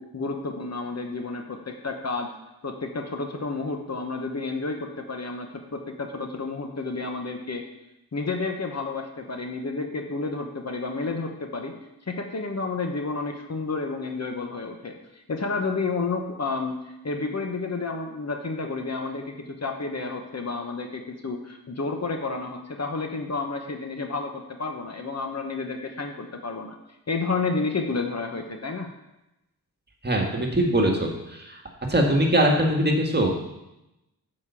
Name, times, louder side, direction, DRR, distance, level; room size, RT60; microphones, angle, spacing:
voice 1, 0.0-2.3 2.6-7.6 8.1-11.7 12.1-14.9 15.3-26.7 27.1-28.9, left 3 dB, 45° left, 4 dB, 1.2 m, -30 dB
voice 2, 30.0-31.6 31.9-33.3, right 1 dB, 30° right, 0 dB, 1.8 m, -22 dB
7.3 x 5.3 x 7.0 m, 0.92 s
cardioid pair, 60°, 36 cm